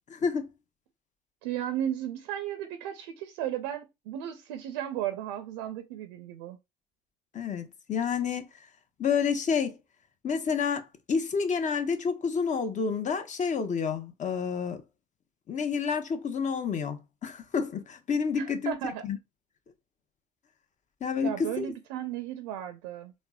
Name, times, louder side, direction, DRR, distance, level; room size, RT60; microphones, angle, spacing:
voice 1, 0.1-0.5 7.3-8.5 9.0-9.8 10.2-14.8 15.5-18.7 19.0-19.2 21.0-21.7, left 6 dB, 40° left, 0.7 m, -29 dB
voice 2, 1.4-6.6 18.4-19.0 21.2-23.1, right 11 dB, 80° right, 0.4 m, -34 dB
4.2 x 2.1 x 2.3 m
hypercardioid pair, 60°, 20 cm